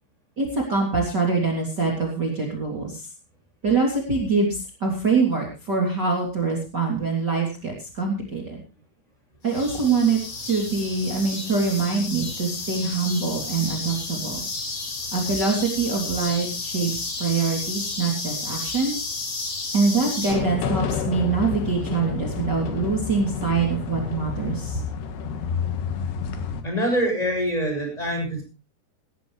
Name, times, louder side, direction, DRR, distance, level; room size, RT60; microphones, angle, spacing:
voice 1, 0.4-3.1 3.6-8.6 9.4-14.4 15.1-19.1 19.7-24.8, right 4 dB, 25° right, 0 dB, 3.4 m, -24 dB
sound 1, 9.5-20.3, left 3 dB, 40° left, 4.4 m, -32 dB
sound 2, 20.3-26.6, left 7 dB, 75° left, 3.6 m, -29 dB
voice 2, 26.6-28.4, equal, 10° left, 2 dB, 7.1 m, -24 dB
18.0 x 14.5 x 3.3 m, 0.30 s
omnidirectional pair, 4.8 m